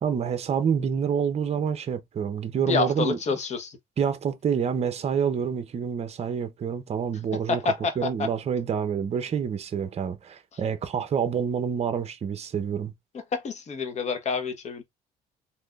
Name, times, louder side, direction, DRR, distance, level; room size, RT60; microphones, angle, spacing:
voice 1, 0.0-3.2 4.0-7.6 8.0-12.9, right 7 dB, 40° right, 0.7 m, -27 dB
voice 2, 2.7-3.8 7.5-8.0 13.3-14.8, left 5 dB, 45° left, 1.0 m, -27 dB
3.5 x 2.7 x 2.4 m
cardioid pair, 110°, 17 cm